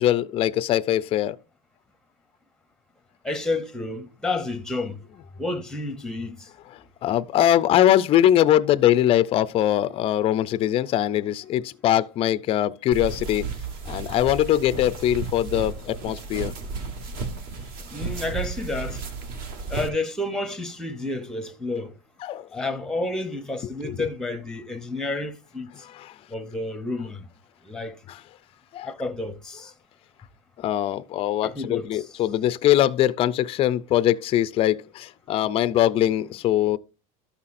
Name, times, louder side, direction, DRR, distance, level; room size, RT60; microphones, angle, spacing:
voice 1, 0.0-1.4 6.7-13.5 13.9-16.5 22.2-22.5 23.8-24.0 25.9-26.1 28.1-28.2 28.7-28.9 30.6-36.8, left 12 dB, 30° left, 0.4 m, -22 dB
voice 2, 3.2-5.0 5.4-6.5 17.9-19.0 19.7-21.9 22.5-25.7 26.3-27.3 27.6-28.0 28.8-29.7 31.4-32.0, left 2 dB, 5° left, 0.8 m, -30 dB
sound 1, 12.9-19.9, right 4 dB, 50° right, 1.5 m, -33 dB
13.0 x 5.7 x 2.5 m
supercardioid pair, 145°, 19 cm